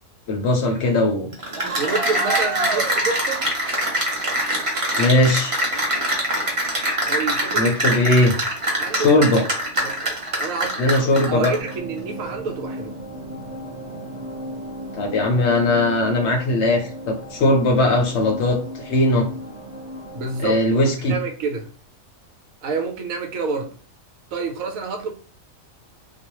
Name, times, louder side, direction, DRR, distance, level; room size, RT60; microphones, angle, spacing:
voice 1, 0.3-1.3 5.0-5.6 7.6-8.4 8.9-9.4 10.8-11.5 14.9-19.3 20.4-21.1, left 2 dB, 65° left, 0.8 m, -19 dB
Cheering / Applause, 1.3-11.7, right 1 dB, 35° right, 0.5 m, -23 dB
voice 2, 1.7-3.4 7.1-8.0 8.8-9.4 9.8-13.0 20.1-21.7 22.6-23.7 24.3-25.1, right 4 dB, 75° right, 1.0 m, -29 dB
thunder pad, 11.4-20.5, equal, 15° right, 1.0 m, -36 dB
2.4 x 2.2 x 2.9 m
omnidirectional pair, 1.5 m